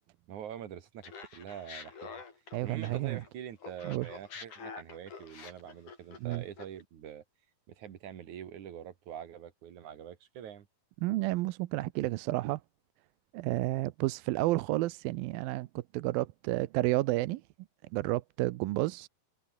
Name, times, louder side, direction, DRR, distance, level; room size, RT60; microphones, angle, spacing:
voice 1, 0.3-2.2 2.6-7.2 7.7-10.7, right 9 dB, 60° right, 3.1 m, -45 dB
Laughter, 1.0-3.3 3.6-6.8, left 5 dB, 55° left, 5.8 m, -47 dB
voice 2, 2.5-3.2 3.8-4.1 6.2-6.4 11.0-12.6 13.3-17.4 17.9-19.1, right 18 dB, 80° right, 2.5 m, -31 dB
omnidirectional pair, 4.2 m